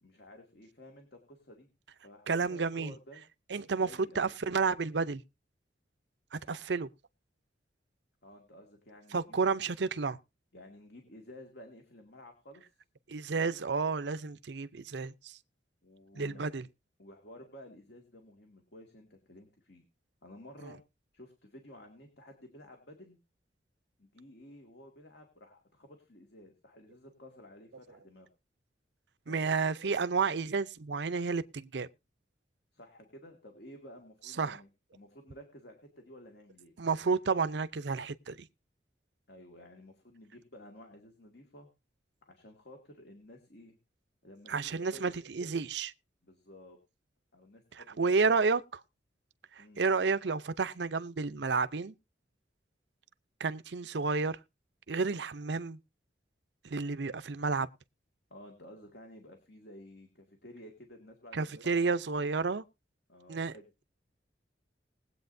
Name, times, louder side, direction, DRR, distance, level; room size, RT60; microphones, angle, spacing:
voice 1, 0.0-1.7 2.0-3.2 3.7-4.3 6.5-6.7 8.2-9.4 10.5-12.6 15.8-16.5 17.0-19.8 20.2-20.8 21.1-23.2 24.0-28.3 29.3-29.6 32.7-36.7 39.3-41.7 42.3-43.8 44.2-45.1 46.2-46.8 47.3-48.1 49.6-50.1 58.3-61.8 63.1-63.6, left 1 dB, 60° left, 2.1 m, -53 dB
voice 2, 2.3-2.9 3.5-3.9 4.2-5.2 6.3-6.9 9.1-10.2 13.1-15.4 16.2-16.6 29.3-31.9 34.4-34.6 36.8-38.3 44.5-45.9 48.0-48.8 49.6-51.9 53.4-54.4 54.9-55.8 56.6-57.7 61.3-62.6 63.3-63.5, right 4 dB, 70° right, 0.6 m, -31 dB
20.5 x 8.4 x 2.6 m
head